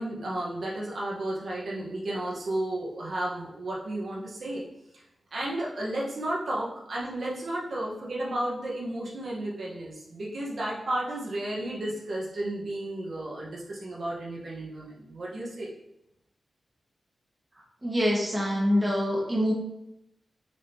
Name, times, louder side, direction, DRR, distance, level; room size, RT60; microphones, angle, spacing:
voice 1, 0.0-4.6 4.9-5.0 5.3-15.7, right 1 dB, 60° right, -5 dB, 1.5 m, -33 dB
voice 2, 17.8-19.5, equal, 20° right, -4 dB, 1.8 m, -25 dB
6.8 x 5.0 x 3.0 m, 0.86 s
wide cardioid pair, 120°, 0 cm